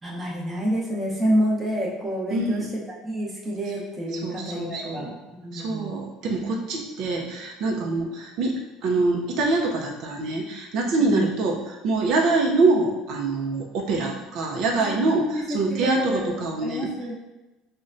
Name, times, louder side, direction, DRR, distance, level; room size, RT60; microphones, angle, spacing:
voice 1, 0.0-5.1 5.4-5.9 11.0-11.3 14.8-16.3 16.6-17.1, equal, 10° right, -5 dB, 0.7 m, -28 dB
voice 2, 2.3-2.7 4.2-5.1 5.5-16.9, right 3 dB, 55° right, 0 dB, 0.4 m, -25 dB
5.0 x 2.1 x 2.5 m, 1.1 s
cardioid pair, 145°, 0 cm